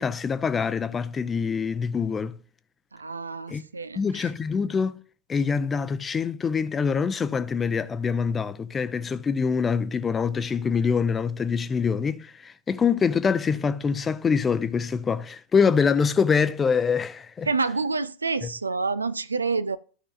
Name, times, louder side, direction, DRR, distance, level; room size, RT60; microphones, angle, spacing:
voice 1, 0.0-2.4 3.5-3.6 4.0-4.9 5.3-17.5 18.4-18.5, left 6 dB, 20° left, 0.6 m, -25 dB
voice 2, 2.9-4.3 17.5-19.8, right 4 dB, 80° right, 0.4 m, -28 dB
14.5 x 5.5 x 2.4 m
figure-of-eight pair, 90°, 0 cm